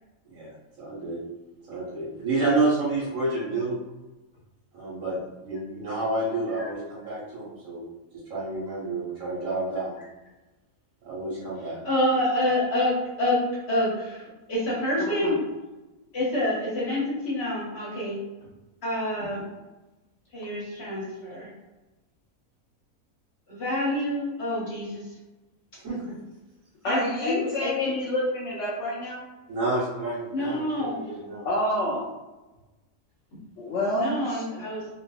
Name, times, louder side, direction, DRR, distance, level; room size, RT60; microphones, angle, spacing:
voice 1, 0.8-1.2 1.7-3.8 4.7-5.2 5.4-7.8 8.1-10.0 11.0-11.8 25.7-26.1 29.5-31.5, right 2 dB, 65° right, -7 dB, 1.3 m, -29 dB
voice 2, 11.8-12.9 13.2-13.4 13.7-15.3 16.1-18.2 18.8-19.4 20.3-21.5 23.5-25.0 26.8-27.3 27.6-27.9 30.3-31.0 33.3-33.4 34.0-34.9, left 1 dB, 50° left, -7 dB, 1.1 m, -27 dB
voice 3, 15.0-15.4 26.8-29.2 31.4-32.1 33.6-34.4, left 1 dB, 65° left, -4 dB, 0.8 m, -28 dB
2.7 x 2.5 x 2.3 m, 1.1 s
omnidirectional pair, 1.5 m